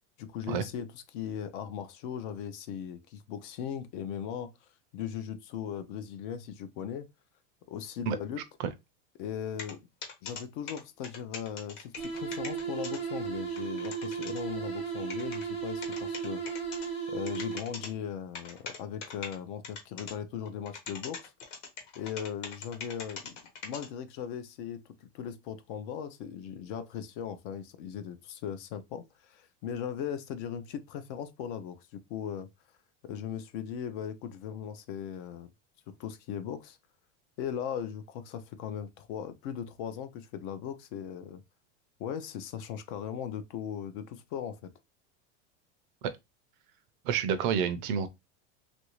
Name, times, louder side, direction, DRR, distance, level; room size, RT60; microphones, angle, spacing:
voice 1, 0.2-4.5 4.9-7.1 7.7-8.4 9.2-9.8 10.2-16.4 17.1-21.3 22.0-32.5 33.0-35.5 35.9-36.8 37.4-41.4 42.0-44.7, left 8 dB, 50° left, 0.5 m, -38 dB
sound 1, 9.6-9.7 10.0-10.4 10.7-13.0 13.3-13.4 13.6-14.4 15.1-15.4 15.8-16.9 17.3-17.9 18.3-19.4 19.6-20.1 20.5-23.9, left 5 dB, 85° left, 1.3 m, -41 dB
sound 2, 12.0-17.9, right 6 dB, 15° left, 0.9 m, -35 dB
voice 2, 47.0-48.1, right 7 dB, 50° right, 0.5 m, -28 dB
3.1 x 2.5 x 3.0 m
supercardioid pair, 165°, 35 cm